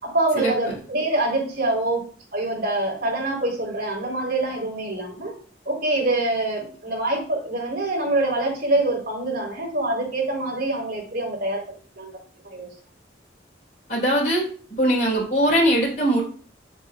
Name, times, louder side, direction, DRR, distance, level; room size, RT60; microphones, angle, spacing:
voice 1, 0.0-5.3 5.7-12.1 12.4-12.7, right 2 dB, 55° right, -2 dB, 3.8 m, -25 dB
voice 2, 13.9-14.4 14.7-16.2, right 1 dB, 45° left, -6 dB, 4.2 m, -20 dB
9.5 x 7.3 x 2.4 m, 0.43 s
head